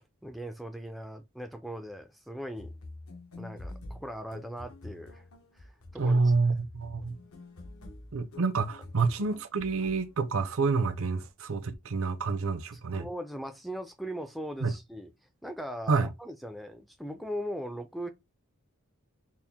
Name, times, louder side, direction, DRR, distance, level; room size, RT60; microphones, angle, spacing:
voice 1, 0.2-2.7 3.4-5.2 5.6-6.3 12.9-15.1 15.4-18.1, equal, ahead, 0.4 m, -39 dB
sound 1, 2.5-10.2, left 2 dB, 75° left, 0.9 m, -47 dB
voice 2, 6.0-7.2 8.1-13.1 14.6-14.7 15.9-16.1, right 4 dB, 70° right, 0.6 m, -28 dB
4.2 x 2.1 x 3.5 m
head